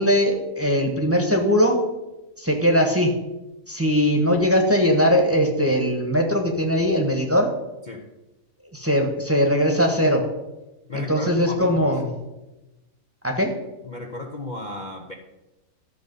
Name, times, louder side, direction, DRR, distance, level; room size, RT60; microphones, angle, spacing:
voice 1, 0.0-1.8 2.4-3.2 3.7-7.5 8.7-10.2 10.9-12.1 13.2-13.6, equal, 10° right, 2 dB, 1.3 m, -20 dB
voice 2, 10.9-11.9 13.8-15.1, left 2 dB, 35° left, 1 dB, 0.9 m, -34 dB
13.0 x 6.7 x 5.4 m, 1.0 s
omnidirectional pair, 1.5 m